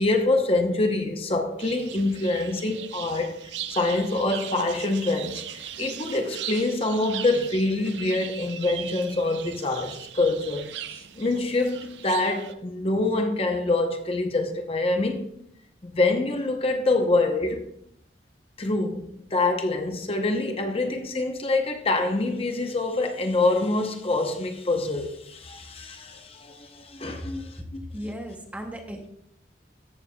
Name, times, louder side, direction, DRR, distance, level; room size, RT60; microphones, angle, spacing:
voice 1, 0.0-3.3 3.7-5.4 5.8-10.7 10.9-15.3 15.8-17.7 18.6-27.8, left 2 dB, 30° left, 0.8 m, -25 dB
sound 1, 1.6-12.5, right 10 dB, 80° right, 0.6 m, -39 dB
voice 2, 27.8-29.1, equal, 10° right, 0.8 m, -36 dB
14.5 x 6.8 x 2.3 m
head